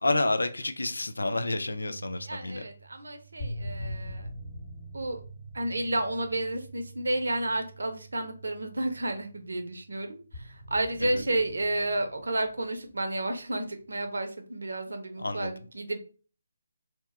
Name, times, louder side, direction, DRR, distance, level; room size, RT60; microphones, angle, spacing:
voice 1, 0.0-2.6 11.0-11.2 15.2-15.5, left 2 dB, 80° left, 9 dB, 0.4 m, -29 dB
sound 1, 1.9-9.8 10.3-13.0 13.8-14.1, equal, 40° left, 1.0 m, -43 dB
voice 2, 2.3-4.3 4.9-5.2 5.5-16.0, right 1 dB, 70° right, 6 dB, 0.6 m, -31 dB
2.8 x 2.2 x 3.3 m, 0.39 s
figure-of-eight pair, 145°, 0 cm